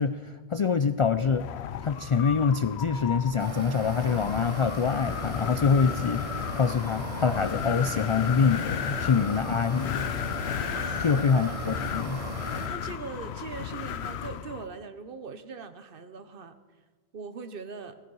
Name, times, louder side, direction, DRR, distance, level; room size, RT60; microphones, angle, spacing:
voice 1, 0.0-1.5 1.8-10.1 11.0-12.2, left 6 dB, 55° left, 11 dB, 0.3 m, -25 dB
Wind, 1.0-14.7, left 10 dB, 80° left, 0.9 m, -34 dB
sound 1, 3.4-12.7, right 3 dB, 35° right, 0.9 m, -38 dB
voice 2, 10.7-11.6 12.7-16.6 17.1-18.0, right 5 dB, 60° right, 10 dB, 1.0 m, -41 dB
16.5 x 15.5 x 4.7 m, 1.4 s
omnidirectional pair, 1.1 m